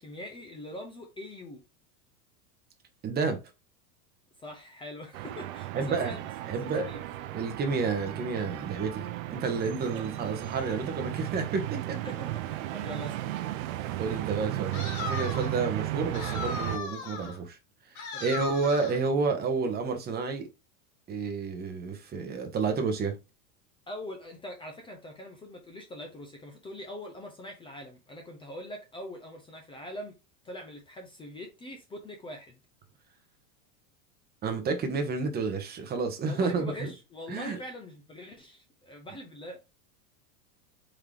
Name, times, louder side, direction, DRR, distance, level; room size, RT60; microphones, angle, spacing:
voice 1, 0.0-1.6 4.4-6.3 6.7-7.0 9.9-10.1 12.0-13.3 18.1-18.4 23.9-30.1 30.4-32.6 36.3-39.6, left 1 dB, 15° left, 0.4 m, -43 dB
voice 2, 3.0-3.4 5.7-6.1 6.5-6.9 7.3-12.0 13.8-17.6 17.9-20.5 21.1-23.2 34.4-36.9 37.3-37.6, right 4 dB, 20° right, 0.8 m, -30 dB
sound 1, 5.1-16.8, right 15 dB, 65° right, 0.6 m, -35 dB
sound 2, 14.7-15.6 16.1-17.4 18.0-19.0, left 4 dB, 80° left, 1.9 m, -37 dB
3.8 x 2.8 x 3.3 m
supercardioid pair, 130°, 44 cm